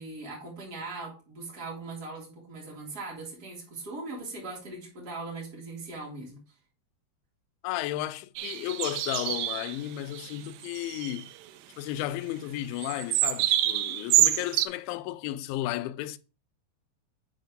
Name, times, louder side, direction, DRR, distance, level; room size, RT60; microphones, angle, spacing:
voice 1, 0.0-6.4, right 3 dB, 25° right, 3.0 m, -40 dB
voice 2, 7.6-11.3 11.8-16.2, left 14 dB, 85° left, 2.9 m, -33 dB
sound 1, 8.4-9.8 10.1-10.3 10.6-11.3 12.8-14.7, right 14 dB, 80° right, 2.6 m, -26 dB
7.7 x 4.3 x 5.1 m
omnidirectional pair, 5.2 m